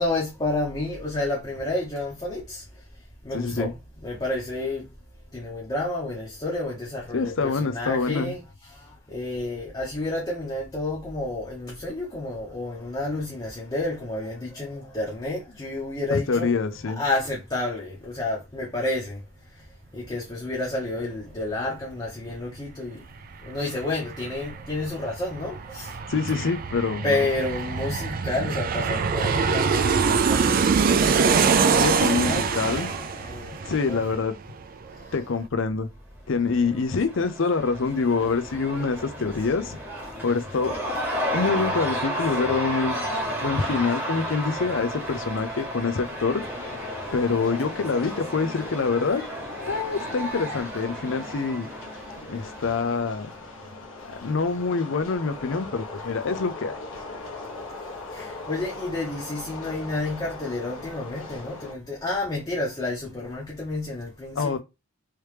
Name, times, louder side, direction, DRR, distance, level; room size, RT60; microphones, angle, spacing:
voice 1, 0.0-2.6 3.2-3.7 4.0-4.8 5.3-8.4 9.1-16.5 16.9-19.2 19.9-23.0 23.5-25.9 27.0-29.8 30.1-34.0 58.1-64.6, left 2 dB, 20° left, 0.8 m, -30 dB
voice 2, 3.3-3.7 7.1-8.3 16.1-17.0 26.1-27.2 31.7-32.9 33.7-34.4 35.1-35.9 36.3-39.8 40.2-40.7 41.3-43.0 43.4-46.4 47.1-49.2 49.7-51.7 52.3-53.3 54.0-56.8 64.4-64.6, left 4 dB, 70° left, 0.5 m, -26 dB
Aircraft, 22.9-23.0 23.3-34.6 34.9-35.0, right 5 dB, 45° right, 0.3 m, -24 dB
Cheering / Crowd, 36.4-53.3, equal, 10° right, 1.1 m, -33 dB
sound 1, 46.4-61.7, left 3 dB, 85° left, 1.2 m, -40 dB
3.2 x 2.9 x 3.3 m
head